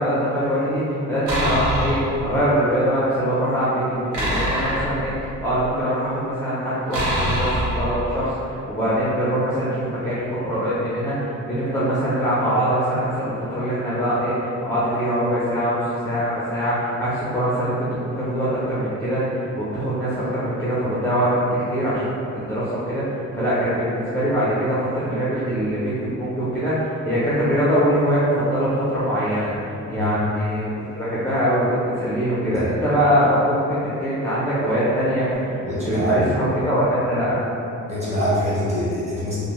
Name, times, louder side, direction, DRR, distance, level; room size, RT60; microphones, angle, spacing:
voice 1, 0.0-23.0 23.4-35.5 35.9-37.4, equal, 10° left, -10 dB, 0.4 m, -23 dB
sound 1, 1.3-2.2 4.1-5.6 6.9-8.4, equal, 85° right, 0.9 m, -24 dB
voice 2, 35.6-36.3 37.9-39.4, equal, 20° right, -9 dB, 0.9 m, -24 dB
2.6 x 2.1 x 2.9 m, 2.7 s
cardioid pair, 135°, 30 cm